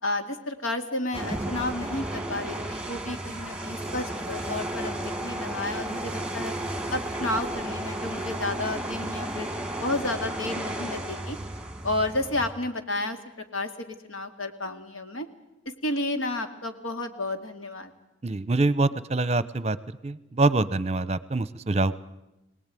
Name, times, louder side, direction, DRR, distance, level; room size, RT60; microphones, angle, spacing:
voice 1, 0.0-6.5 6.9-9.5 9.8-11.4 11.8-13.2 13.5-15.3 15.7-17.9, left 2 dB, 90° left, 7 dB, 2.3 m, -31 dB
sound 1, 1.1-12.5, right 1 dB, 5° right, 1.8 m, -33 dB
voice 2, 18.2-19.8 20.0-22.0, right 2 dB, 30° right, 17 dB, 0.8 m, -25 dB
25.0 x 18.5 x 9.1 m, 0.95 s
head